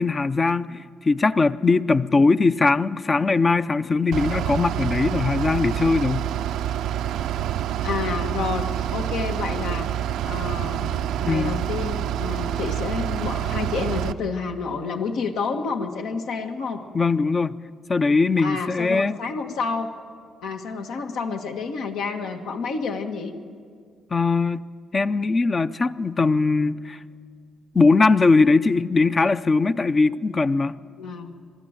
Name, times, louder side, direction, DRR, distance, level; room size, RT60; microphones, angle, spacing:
voice 1, 0.0-6.3 11.3-11.6 16.9-17.6 17.9-19.2 24.1-24.6 24.9-27.0 27.7-30.7, left 3 dB, 30° left, 13 dB, 0.6 m, -20 dB
Bus / Idling, 4.1-14.1, right 10 dB, 85° right, 0.5 m, -27 dB
voice 2, 7.8-8.7 8.9-9.9 10.2-16.8 18.4-19.9 20.4-23.3 31.0-31.3, left 5 dB, 80° left, 4 dB, 1.7 m, -29 dB
22.5 x 13.5 x 9.0 m, 2.1 s
cardioid pair, 90°, 0 cm